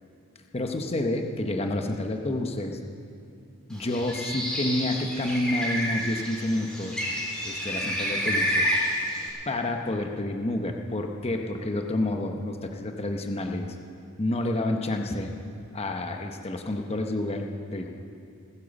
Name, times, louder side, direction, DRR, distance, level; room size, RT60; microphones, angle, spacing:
voice 1, 0.5-2.8 3.7-7.0 7.4-8.7 9.5-13.8 14.2-15.3 15.7-18.0, left 1 dB, 30° left, 4 dB, 0.9 m, -29 dB
Bird, 3.8-9.3, equal, 5° left, 3.5 m, -29 dB
18.5 x 10.5 x 7.0 m, 2.5 s
head